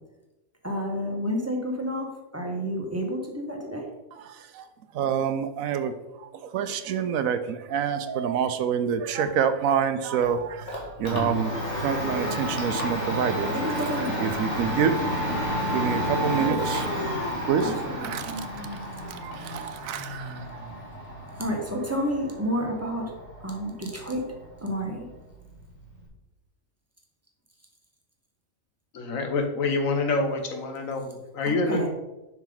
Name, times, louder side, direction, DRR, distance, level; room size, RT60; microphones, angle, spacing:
voice 1, 0.6-2.1 2.3-3.8 13.4-14.2 16.4-16.6 17.6-17.9 21.4-23.1 23.4-24.2 24.6-25.0 31.7-31.9, equal, 10° right, 0 dB, 1.3 m, -29 dB
voice 2, 4.2-4.7 4.9-13.9 14.2-14.9 15.7-18.5 18.7-20.6, right 7 dB, 90° right, 10 dB, 1.1 m, -28 dB
Domestic sounds home sounds, 10.2-26.1, equal, 60° left, 1.9 m, -31 dB
voice 3, 28.9-31.9, left 3 dB, 75° left, 5 dB, 1.5 m, -27 dB
7.2 x 6.0 x 3.9 m, 1.0 s
omnidirectional pair, 1.4 m